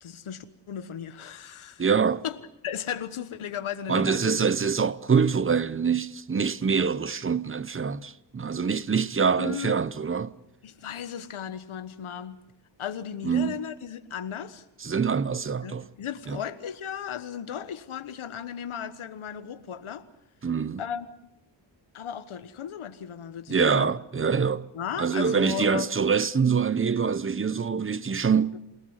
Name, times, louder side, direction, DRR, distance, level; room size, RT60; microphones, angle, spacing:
voice 1, 0.0-1.8 2.2-4.5 9.4-9.7 10.6-12.4 12.8-14.6 15.6-20.1 20.8-21.3 21.9-23.9 24.7-25.9 28.5-28.6, left 8 dB, 80° left, 1.3 m, -36 dB
voice 2, 1.8-2.2 3.9-10.3 13.2-13.6 14.8-15.9 16.3-16.4 20.4-20.8 23.5-24.7 25.0-28.6, right 6 dB, 25° right, 0.8 m, -25 dB
28.0 x 18.5 x 8.1 m
wide cardioid pair, 110°, 49 cm